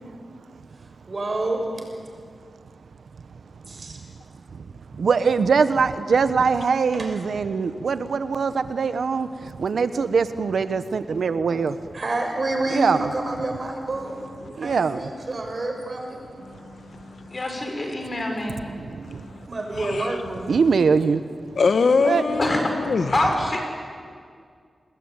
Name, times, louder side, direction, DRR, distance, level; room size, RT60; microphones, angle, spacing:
voice 1, 1.0-1.8 3.7-4.0 6.9-7.1 11.9-14.2 14.5-16.2 19.4-20.6, right 2 dB, 50° right, 2 dB, 6.5 m, -28 dB
voice 2, 5.0-11.8 12.7-13.0 14.6-15.1 18.8-19.2 20.5-21.2 22.0-22.2, right 5 dB, 85° right, 12 dB, 0.9 m, -22 dB
voice 3, 14.4-14.8 17.3-18.6 22.4-22.6 23.1-23.6, left 1 dB, 45° left, 2 dB, 6.5 m, -25 dB
voice 4, 16.5-17.4 19.0-19.5 19.8-20.1 21.5-23.2, left 4 dB, 75° left, 9 dB, 1.3 m, -24 dB
29.0 x 20.0 x 9.1 m, 2.1 s
cardioid pair, 65°, 0 cm